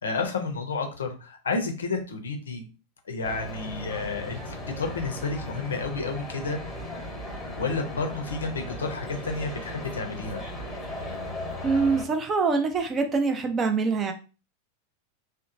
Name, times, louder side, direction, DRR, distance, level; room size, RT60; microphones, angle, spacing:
voice 1, 0.0-2.6 3.1-6.6 6.9-7.1 7.6-10.4, left 4 dB, 70° left, 4 dB, 0.5 m, -31 dB
sound 1, 3.2-12.1, left 1 dB, 5° left, 1.0 m, -37 dB
voice 2, 11.6-14.1, right 4 dB, 25° right, 5 dB, 0.4 m, -24 dB
2.9 x 2.0 x 2.5 m, 0.33 s
figure-of-eight pair, 90°, 0 cm